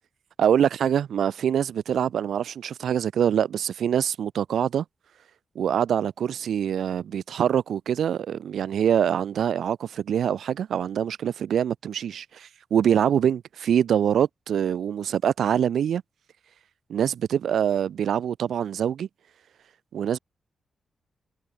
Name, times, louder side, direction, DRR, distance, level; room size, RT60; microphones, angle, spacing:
voice 1, 0.4-4.8 5.5-16.0 16.9-19.1 19.9-20.2, right 9 dB, 85° right, 4.8 m, -24 dB
wide cardioid pair, 110°, 0 cm